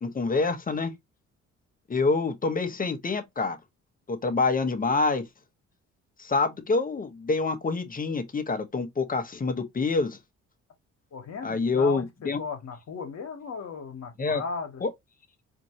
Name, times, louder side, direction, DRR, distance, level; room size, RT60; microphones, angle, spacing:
voice 1, 0.0-0.9 1.9-3.6 4.1-5.2 6.2-10.2 11.4-12.4 14.2-14.4 14.8-14.9, left 3 dB, 30° left, 1.0 m, -26 dB
voice 2, 11.1-14.8, left 5 dB, 60° left, 1.4 m, -36 dB
4.3 x 2.7 x 3.0 m
cardioid pair, 90°, 30 cm